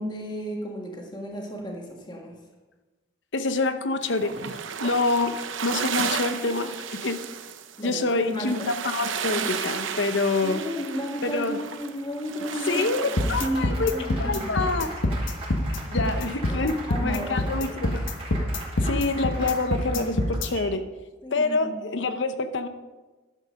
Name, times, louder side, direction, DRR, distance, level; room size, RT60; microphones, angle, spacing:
voice 1, 0.0-2.3 7.8-8.7 9.3-9.5 10.4-12.9 13.2-14.7 16.0-16.1 16.5-17.5 21.2-21.7, equal, 25° left, 0 dB, 1.6 m, -33 dB
voice 2, 3.3-5.3 5.6-7.2 7.8-10.6 11.2-11.6 12.7-13.9 14.2-14.9 15.9-18.1 18.8-20.8 21.3-22.7, left 3 dB, 70° left, 9 dB, 0.8 m, -26 dB
sound 1, 4.0-13.5, right 7 dB, 85° right, 0.7 m, -33 dB
Applause, 12.1-20.8, right 2 dB, 30° right, 2.4 m, -41 dB
sound 2, 13.2-20.5, left 1 dB, 90° left, 1.2 m, -26 dB
11.5 x 7.6 x 5.3 m, 1.2 s
head